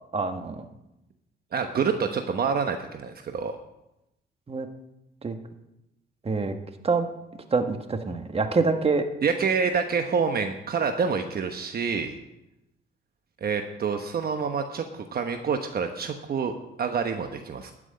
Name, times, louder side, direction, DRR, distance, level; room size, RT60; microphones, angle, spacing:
voice 1, 0.1-0.6 4.5-4.7 5.2-5.4 6.2-6.5 6.8-7.1 7.5-9.0, right 4 dB, 30° right, 6 dB, 1.5 m, -25 dB
voice 2, 1.5-3.6 9.2-12.2 13.4-16.5 16.8-17.7, right 5 dB, 50° right, 6 dB, 1.1 m, -27 dB
13.0 x 6.2 x 9.3 m, 0.90 s
cardioid pair, 90°, 20 cm